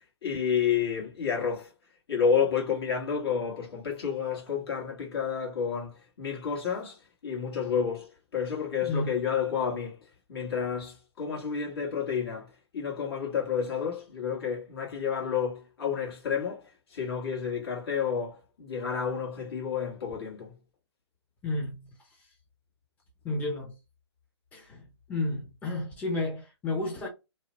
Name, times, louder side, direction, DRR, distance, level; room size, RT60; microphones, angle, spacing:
voice 1, 0.0-1.7 2.1-10.0 10.3-20.5, left 7 dB, 60° left, 1.5 m, -30 dB
voice 2, 21.4-21.8 23.2-23.7 24.5-24.8 25.1-27.1, left 2 dB, 10° left, 0.6 m, -31 dB
2.7 x 2.1 x 2.9 m
hypercardioid pair, 140°, 15 cm